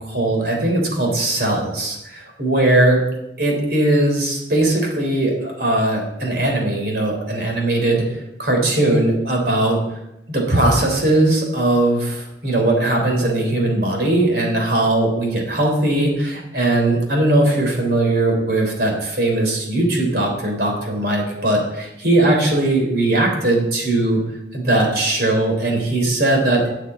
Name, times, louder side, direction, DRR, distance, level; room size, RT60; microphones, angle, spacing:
voice 1, 0.0-3.0 3.4-8.1 8.4-9.8 10.3-24.2 24.5-26.7, right 1 dB, 60° right, 1 dB, 3.5 m, -19 dB
8.2 x 8.0 x 8.4 m, 0.90 s
head